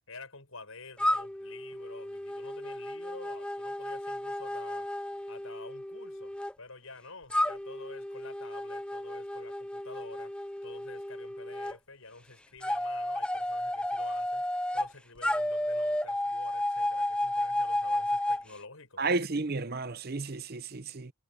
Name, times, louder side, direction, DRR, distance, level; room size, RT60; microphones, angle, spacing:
voice 1, 0.1-4.9 5.3-10.3 10.6-14.4 14.7-19.2, left 3 dB, 75° left, 6.5 m, -49 dB
sound 1, 1.0-6.5 7.3-11.7 12.6-14.9 15.2-18.4, left 1 dB, 5° left, 0.6 m, -32 dB
voice 2, 19.0-21.1, right 3 dB, 45° right, 0.8 m, -32 dB
head